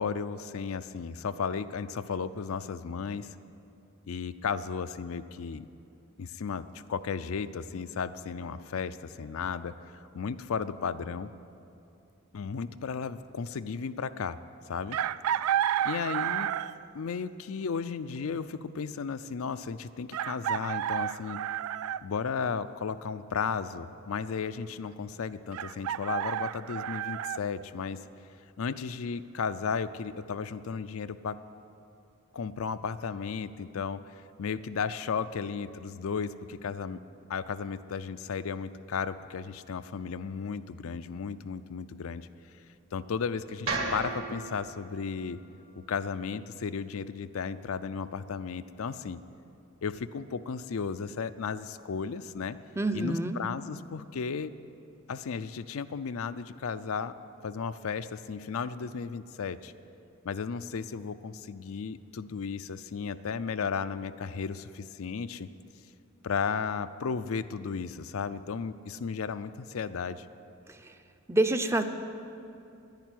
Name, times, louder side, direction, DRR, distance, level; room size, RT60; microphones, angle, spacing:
voice 1, 0.0-3.4 4.0-5.7 6.2-11.3 12.3-14.4 14.7-15.0 15.8-16.5 16.9-21.4 22.0-28.0 28.6-31.4 32.3-37.0 37.3-42.3 42.9-45.4 45.8-49.2 49.8-52.6 52.9-54.5 55.1-57.2 57.4-59.7 60.2-65.5 66.2-70.3, left 6 dB, 70° left, 12 dB, 0.4 m, -34 dB
Chicken rooster, 14.9-16.9 18.5-18.6 20.1-22.0 25.5-27.4, right 10 dB, 80° right, 0.3 m, -31 dB
sound 1, 43.7-47.8, right 3 dB, 65° right, 2.3 m, -38 dB
voice 2, 52.8-53.4 70.7-71.0 71.3-71.8, right 1 dB, 15° right, 8 dB, 0.5 m, -27 dB
10.5 x 10.0 x 9.1 m, 2.6 s
head